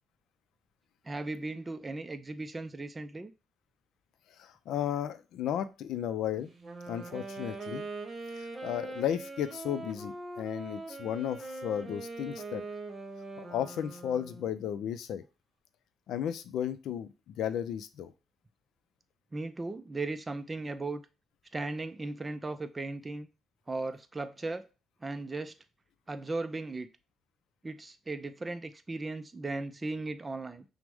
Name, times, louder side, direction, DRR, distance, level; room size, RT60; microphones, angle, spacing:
voice 1, 1.0-3.3 19.3-21.0 21.5-23.3 23.7-24.7 25.0-25.5 26.1-26.9 27.6-30.6, right 2 dB, 20° right, 9 dB, 0.4 m, -37 dB
voice 2, 4.4-6.5 6.9-7.8 8.3-12.6 13.4-15.2 16.1-18.1, left 10 dB, 80° left, 12 dB, 0.4 m, -34 dB
Wind instrument woodwind instrument, 6.5-14.6, right 3 dB, 40° right, 1.0 m, -42 dB
5.9 x 2.1 x 3.5 m, 0.30 s
cardioid pair, 90°, 0 cm